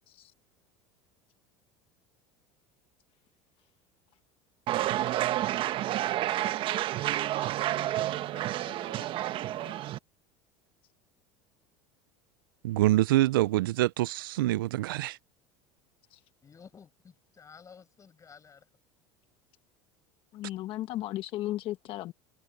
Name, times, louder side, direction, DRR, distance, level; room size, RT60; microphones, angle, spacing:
sound 1, 4.7-10.0, right 14 dB, 50° right, 1.3 m, -30 dB
voice 1, 5.0-9.9 16.4-18.6, left 6 dB, 30° left, 6.7 m, -55 dB
voice 2, 12.6-15.2, right 16 dB, 85° right, 0.5 m, -25 dB
voice 3, 20.3-22.1, left 14 dB, 55° left, 1.1 m, -35 dB
hypercardioid pair, 95°, 11 cm